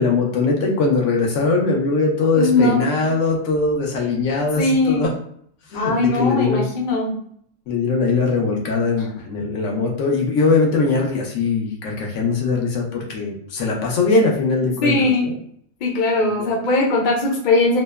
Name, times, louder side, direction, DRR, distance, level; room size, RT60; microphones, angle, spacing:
voice 1, 0.0-5.1 5.7-6.6 7.7-15.3 16.2-16.5, left 3 dB, 80° left, 0 dB, 1.0 m, -21 dB
voice 2, 2.3-3.1 4.6-5.1 5.7-7.1 9.0-9.1 14.8-15.3 15.8-17.8, left 2 dB, 50° left, -1 dB, 0.6 m, -19 dB
2.9 x 2.0 x 2.2 m, 0.65 s
omnidirectional pair, 1.3 m